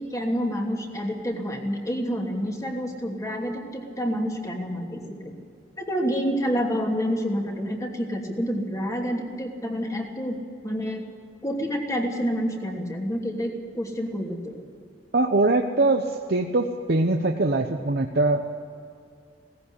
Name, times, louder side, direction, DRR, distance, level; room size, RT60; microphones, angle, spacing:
voice 1, 0.0-5.3 5.8-10.4 10.6-11.0 11.4-14.6, equal, 20° left, 1 dB, 2.7 m, -28 dB
voice 2, 15.1-18.5, right 2 dB, 60° right, 3 dB, 1.0 m, -22 dB
17.5 x 15.0 x 10.0 m, 2.2 s
head